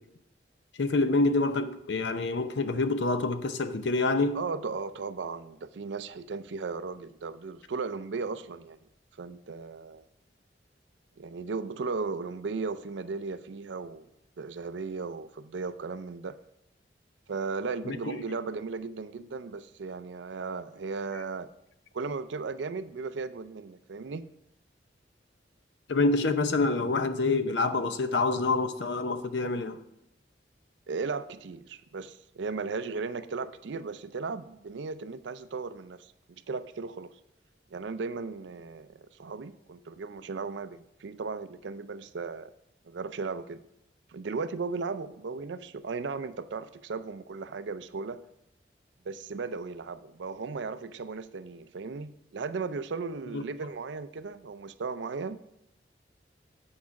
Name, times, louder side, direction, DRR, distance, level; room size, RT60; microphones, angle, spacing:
voice 1, 0.8-4.4 17.8-18.2 25.9-29.8 53.3-53.4, left 3 dB, 80° left, 0.6 m, -27 dB
voice 2, 4.3-8.8 9.2-10.0 11.2-14.1 14.4-16.4 17.3-21.5 21.9-24.3 30.9-36.1 36.5-37.1 37.7-42.5 42.8-43.6 44.1-48.2 49.1-55.4, right 4 dB, 85° right, 0.5 m, -36 dB
8.5 x 4.8 x 5.8 m
head